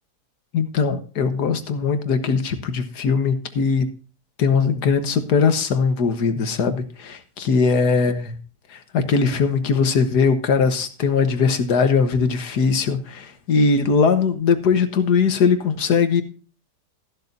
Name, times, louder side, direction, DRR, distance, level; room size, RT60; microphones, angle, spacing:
voice 1, 0.5-3.9 4.4-8.2 8.7-16.2, left 5 dB, 70° left, 9 dB, 1.8 m, -20 dB
14.0 x 12.0 x 2.7 m, 0.36 s
omnidirectional pair, 1.8 m